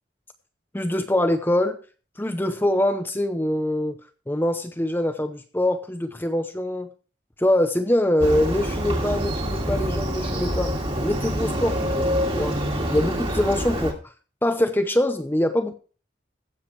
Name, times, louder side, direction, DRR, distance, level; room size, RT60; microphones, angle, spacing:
voice 1, 0.7-1.8 2.2-4.0 4.3-6.9 7.4-10.7 11.0-12.1 12.4-12.5 12.9-14.0 14.4-15.7, left 1 dB, 10° left, 0.7 m, -23 dB
Motorcycle, 8.2-13.9, equal, 30° right, 2.0 m, -26 dB
15.0 x 7.3 x 4.5 m
head